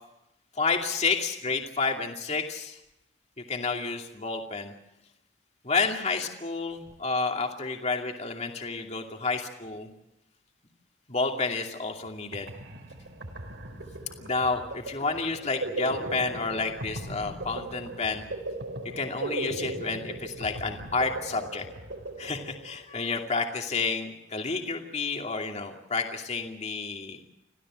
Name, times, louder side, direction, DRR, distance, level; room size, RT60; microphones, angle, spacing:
voice 1, 0.6-2.8 3.5-4.7 5.6-9.9 11.1-12.5 14.2-18.3 19.0-21.6 22.2-27.2, left 4 dB, 35° left, 3 dB, 2.6 m, -30 dB
sound 1, 12.0-12.1 12.3-22.9, right 2 dB, 70° right, 4.3 m, -38 dB
27.5 x 16.0 x 7.6 m, 0.88 s
head